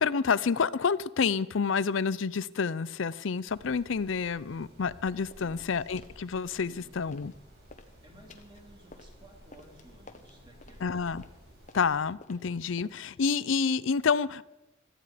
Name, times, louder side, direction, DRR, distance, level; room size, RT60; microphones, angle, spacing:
voice 1, 0.0-7.3 10.8-11.2 11.7-14.4, left 5 dB, 75° left, 0.5 m, -28 dB
sound 1, 3.5-12.1, equal, 55° right, 5.6 m, -54 dB
sound 2, 5.3-5.5 6.0-6.2 6.5-7.4 7.6-13.2, left 3 dB, 40° left, 1.1 m, -54 dB
voice 2, 5.4-5.9 6.6-7.0 8.0-11.1, right 1 dB, 25° right, 2.6 m, -56 dB
17.0 x 13.0 x 5.0 m
head